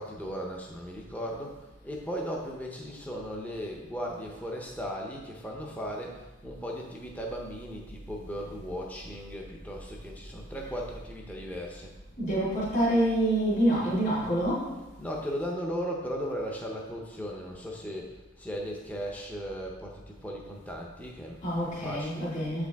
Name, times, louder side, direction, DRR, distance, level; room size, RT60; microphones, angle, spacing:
voice 1, 0.0-11.9 15.0-22.3, equal, 10° left, -1 dB, 0.6 m, -37 dB
voice 2, 12.2-14.7 21.4-22.7, right 1 dB, 40° left, -9 dB, 2.1 m, -26 dB
7.5 x 4.9 x 3.4 m, 1.1 s
head